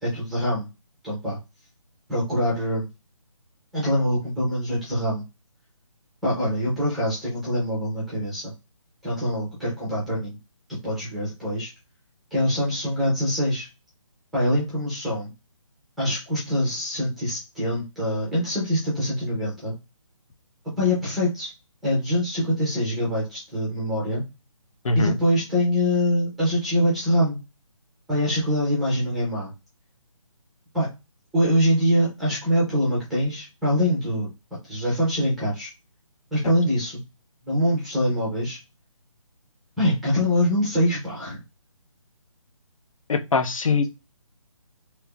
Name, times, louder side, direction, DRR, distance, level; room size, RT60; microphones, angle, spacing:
voice 1, 0.0-0.7 1.0-1.4 2.1-2.9 3.7-5.2 6.2-8.5 9.0-10.4 10.7-11.7 12.3-13.7 14.3-15.3 16.0-19.7 20.8-21.5 21.8-24.2 24.9-27.4 28.1-29.5 30.7-30.9 31.3-35.7 36.3-37.0 37.4-38.6 39.8-41.4, equal, ahead, -6 dB, 0.5 m, -24 dB
voice 2, 24.8-25.2 43.1-43.8, left 4 dB, 75° left, 7 dB, 0.7 m, -22 dB
3.2 x 2.9 x 2.3 m, 0.25 s
hypercardioid pair, 165°, 17 cm